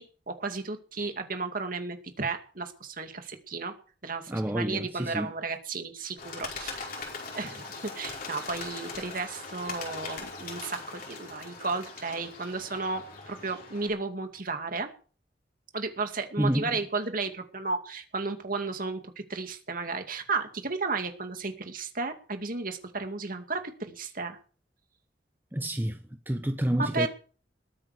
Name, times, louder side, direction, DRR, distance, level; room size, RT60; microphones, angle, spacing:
voice 1, 0.0-3.7 4.0-6.9 7.3-14.9 15.7-24.4 26.9-27.1, right 3 dB, 50° right, 2.4 m, -34 dB
voice 2, 4.3-5.3 16.4-16.8 25.5-27.1, right 1 dB, 10° right, 0.8 m, -29 dB
Bird, 6.2-13.9, left 4 dB, 55° left, 5.0 m, -40 dB
20.5 x 9.0 x 5.0 m
head